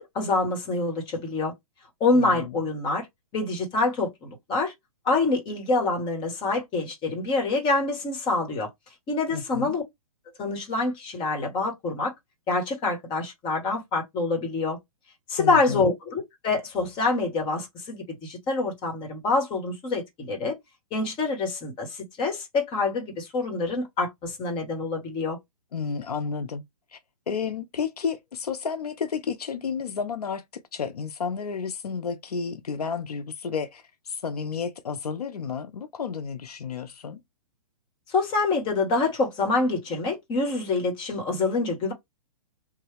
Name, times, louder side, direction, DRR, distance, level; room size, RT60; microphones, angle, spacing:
voice 1, 0.0-1.5 2.0-3.1 3.3-4.7 5.0-8.7 9.1-9.8 10.4-12.1 12.5-14.8 15.3-20.6 20.9-25.4 38.1-41.9, left 3 dB, 25° left, 1.3 m, -26 dB
voice 2, 2.1-2.6 9.3-9.8 15.4-15.9 25.7-26.6 26.9-27.0 27.3-30.4 30.7-37.2, left 6 dB, 90° left, 0.6 m, -31 dB
3.1 x 2.2 x 3.3 m
hypercardioid pair, 130°, 19 cm